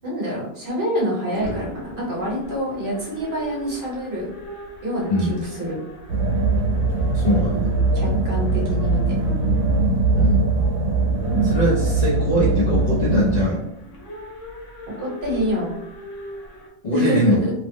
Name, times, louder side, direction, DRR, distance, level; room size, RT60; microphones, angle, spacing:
voice 1, 0.0-4.3 4.8-5.8 7.9-9.1 15.0-15.7 16.9-17.5, equal, 45° right, -5 dB, 1.2 m, -26 dB
sound 1, 1.3-16.7, right 1 dB, 85° left, 1.1 m, -39 dB
sound 2, 6.1-13.5, right 3 dB, 90° right, 0.9 m, -21 dB
voice 2, 7.1-7.7 10.1-10.5 11.4-13.6 16.8-17.4, equal, 50° left, -5 dB, 0.5 m, -21 dB
2.7 x 2.1 x 3.2 m, 0.80 s
omnidirectional pair, 1.3 m